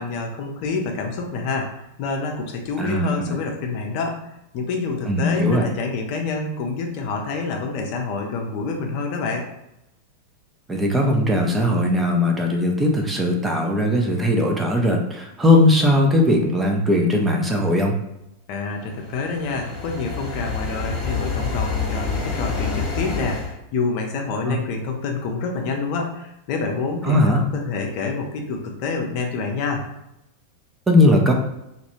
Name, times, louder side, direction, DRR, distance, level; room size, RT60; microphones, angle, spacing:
voice 1, 0.0-4.2 4.5-9.5 18.5-29.8, left 4 dB, 45° left, 2 dB, 0.5 m, -27 dB
voice 2, 2.8-3.4 5.1-5.7 10.7-17.9 24.5-24.6 27.0-27.4 30.9-31.3, left 1 dB, 10° right, 1 dB, 0.4 m, -19 dB
sound 1, 18.8-23.5, left 4 dB, 30° left, 0.9 m, -27 dB
2.3 x 2.1 x 3.0 m, 0.86 s
figure-of-eight pair, 90°, 0 cm